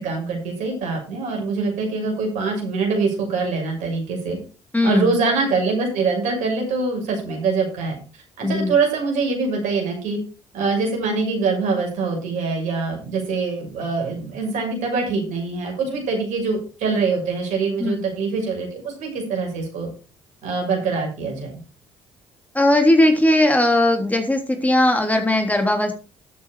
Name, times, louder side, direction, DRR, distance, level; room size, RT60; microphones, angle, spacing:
voice 1, 0.0-4.4 4.8-8.0 8.4-10.2 10.5-19.9 20.4-21.5, right 4 dB, 70° right, 1 dB, 6.8 m, -24 dB
voice 2, 4.7-5.1 8.4-8.7 17.8-18.0 22.5-25.9, left 1 dB, 10° left, 5 dB, 3.2 m, -18 dB
13.0 x 8.0 x 5.0 m, 0.34 s
hypercardioid pair, 55°, 13 cm